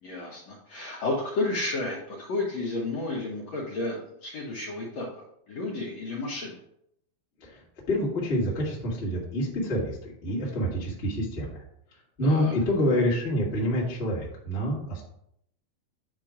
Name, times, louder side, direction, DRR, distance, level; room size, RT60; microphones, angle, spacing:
voice 1, 0.0-5.1 5.5-6.6 12.2-12.5, left 2 dB, 65° left, -5 dB, 1.8 m, -32 dB
voice 2, 7.9-11.5 12.2-15.0, equal, 30° left, -5 dB, 1.3 m, -27 dB
8.8 x 3.0 x 4.9 m, 0.74 s
omnidirectional pair, 4.1 m